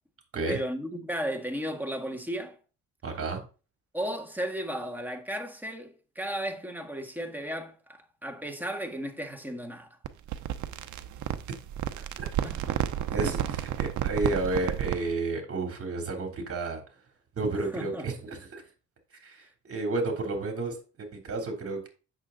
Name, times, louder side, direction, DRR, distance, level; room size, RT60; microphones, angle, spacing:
voice 1, 0.5-2.6 3.9-10.0 12.4-12.8 13.1-13.6 17.6-18.1, equal, 5° right, 1.6 m, -35 dB
voice 2, 3.0-3.4 12.2-12.3 13.1-16.8 17.4-18.6 19.2-21.9, right 2 dB, 50° right, 3.1 m, -31 dB
sound 1, 10.0-15.1, right 11 dB, 75° right, 0.8 m, -31 dB
8.1 x 6.7 x 3.8 m
cardioid pair, 90°, 30 cm